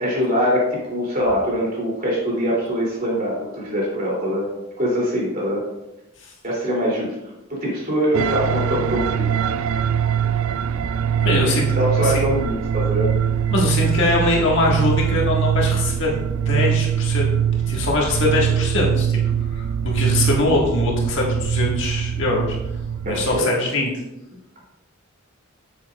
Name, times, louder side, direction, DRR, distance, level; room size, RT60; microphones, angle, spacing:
voice 1, 0.0-4.5 4.8-5.6 6.4-7.1 7.6-9.3 11.2-11.5 11.7-13.1 23.0-23.5, equal, 40° right, -4 dB, 2.9 m, -23 dB
sound 1, 8.1-23.4, right 8 dB, 75° right, 0.4 m, -22 dB
voice 2, 11.2-11.7 12.0-12.2 13.5-16.2 16.5-17.3 17.7-22.6 23.0-23.9, left 2 dB, 60° left, -2 dB, 1.7 m, -22 dB
9.1 x 7.3 x 2.4 m, 0.94 s
head